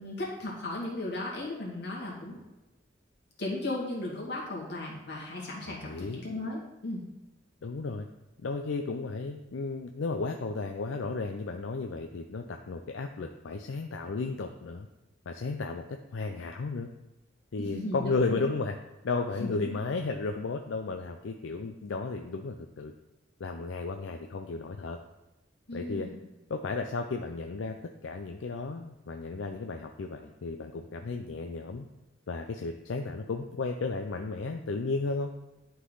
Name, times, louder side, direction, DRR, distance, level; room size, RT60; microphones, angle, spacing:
voice 1, 0.0-2.4 3.4-7.0 17.6-18.5 19.4-19.8 25.7-26.2, left 2 dB, 60° left, -4 dB, 2.1 m, -36 dB
voice 2, 5.7-6.2 7.6-8.1 8.4-14.9 15.3-15.8 16.1-16.9 17.5-18.8 19.0-22.9 23.4-25.0 25.7-26.1 26.5-27.8 28.0-31.9 32.3-35.3, left 3 dB, 85° left, 4 dB, 0.5 m, -34 dB
11.0 x 3.9 x 3.9 m, 1.0 s
head